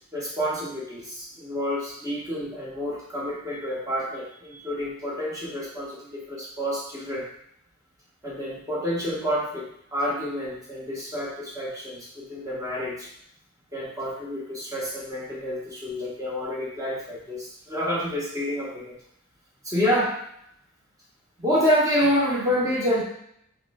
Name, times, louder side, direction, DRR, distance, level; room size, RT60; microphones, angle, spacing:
voice 1, 0.1-7.3 8.2-13.1 13.7-19.0 19.7-20.2 21.4-23.0, equal, 15° right, -5 dB, 1.0 m, -28 dB
3.5 x 3.1 x 3.5 m, 0.73 s
head